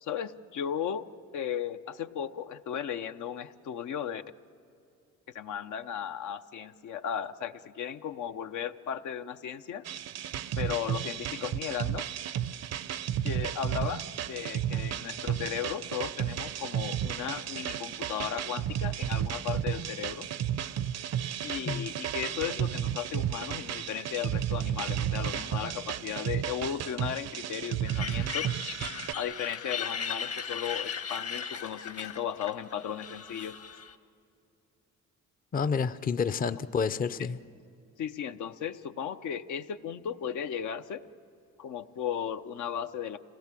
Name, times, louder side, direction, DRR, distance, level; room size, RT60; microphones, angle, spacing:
voice 1, 0.0-1.1 1.3-4.2 5.3-9.8 10.6-12.1 13.2-20.3 21.4-28.5 29.1-33.6 35.8-35.9 37.2-37.3 38.0-41.0 41.6-43.2, left 8 dB, 75° left, 0.8 m, -36 dB
sound 1, 9.8-29.1, right 10 dB, 60° right, 0.6 m, -33 dB
sound 2, 27.9-33.9, left 7 dB, 50° left, 1.3 m, -37 dB
voice 2, 35.5-37.4, left 5 dB, 30° left, 0.5 m, -29 dB
27.0 x 17.5 x 7.5 m
cardioid pair, 90°, 30 cm